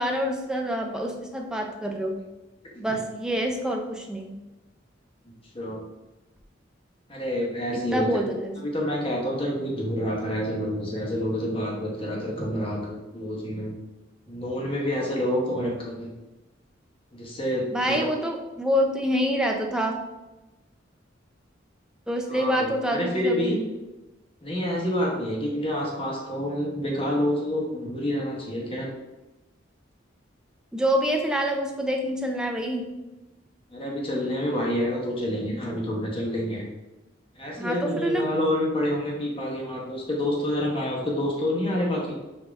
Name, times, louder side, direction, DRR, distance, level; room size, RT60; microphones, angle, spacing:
voice 1, 0.0-2.2 2.8-4.3 7.7-8.6 17.7-20.0 22.1-23.5 30.7-32.9 37.6-38.2, equal, 5° right, 2 dB, 0.5 m, -26 dB
voice 2, 7.1-8.1 8.6-13.7 14.3-16.1 17.1-18.1 22.3-23.6 24.4-28.9 33.7-36.6 37.3-42.1, left 1 dB, 30° left, -2 dB, 1.0 m, -28 dB
5.1 x 2.7 x 3.5 m, 1.0 s
head